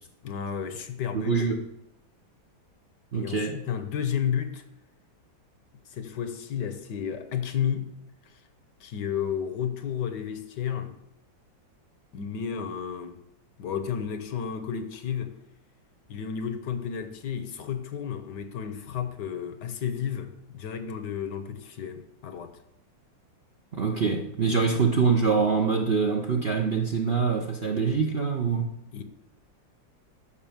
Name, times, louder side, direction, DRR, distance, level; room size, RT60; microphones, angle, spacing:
voice 1, 0.2-1.4 3.1-4.6 5.9-7.9 8.3-8.4 8.8-11.0 12.1-13.2 13.6-15.4 16.1-22.6 28.9-29.0, left 8 dB, 65° left, 1.4 m, -32 dB
voice 2, 1.1-1.6 3.1-3.6 23.7-28.8, right 5 dB, 50° right, 0.7 m, -25 dB
11.5 x 5.7 x 7.1 m
omnidirectional pair, 2.1 m